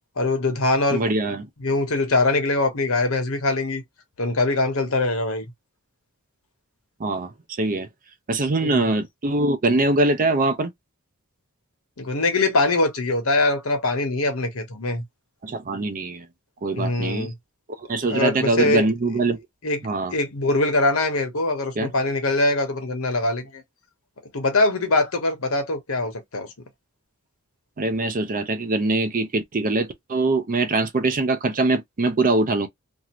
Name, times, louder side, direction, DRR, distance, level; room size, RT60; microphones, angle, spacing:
voice 1, 0.2-1.0 1.6-3.8 4.2-5.5 8.6-8.9 12.0-15.0 16.8-17.3 18.1-18.9 19.6-23.6 24.3-26.5, left 2 dB, 70° left, 1.1 m, -23 dB
voice 2, 0.9-1.4 7.0-7.3 7.6-7.9 8.3-10.7 15.4-16.2 16.6-17.3 17.9-19.4 19.8-20.1 21.8-21.9 27.8-32.7, right 2 dB, 40° right, 0.6 m, -23 dB
2.7 x 2.5 x 3.0 m
head